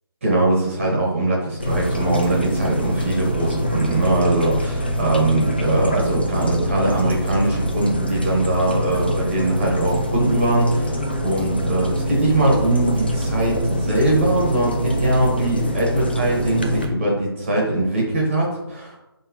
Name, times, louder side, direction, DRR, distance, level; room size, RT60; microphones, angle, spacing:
voice 1, 0.2-19.0, right 1 dB, 30° right, -3 dB, 1.8 m, -21 dB
sound 1, 1.6-16.9, equal, 25° left, 0.4 m, -25 dB
9.7 x 3.3 x 3.2 m, 0.98 s
hypercardioid pair, 180°, 13 cm